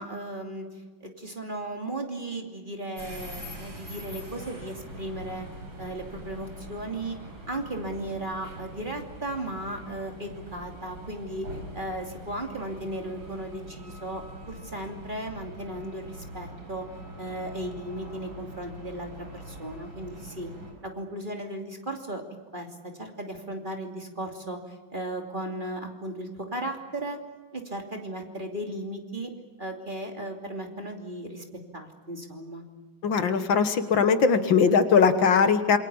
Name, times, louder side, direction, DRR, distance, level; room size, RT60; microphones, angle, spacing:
voice 1, 0.0-5.5 5.8-7.2 7.5-16.9 17.2-20.5 20.8-22.2 22.5-27.2 27.5-29.3 29.6-31.4 31.7-32.6, right 1 dB, 25° right, 3 dB, 2.9 m, -36 dB
sound 1, 3.0-20.7, right 1 dB, 75° right, 5.8 m, -43 dB
voice 2, 33.0-35.8, left 5 dB, 70° left, 9 dB, 2.1 m, -20 dB
27.5 x 23.5 x 7.1 m, 1.3 s
omnidirectional pair, 2.2 m